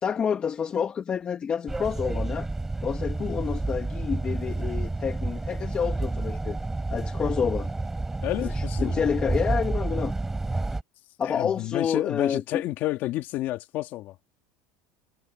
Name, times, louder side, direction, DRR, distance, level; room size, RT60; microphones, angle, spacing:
voice 1, 0.0-2.5 2.8-6.6 6.9-7.7 8.4-10.1 11.2-12.6, left 7 dB, 25° left, 1.2 m, -29 dB
sound 1, 1.7-10.8, right 2 dB, 10° right, 7.4 m, -29 dB
voice 2, 8.2-9.1 11.2-14.1, left 16 dB, 50° left, 2.8 m, -30 dB
supercardioid pair, 140°, 4 cm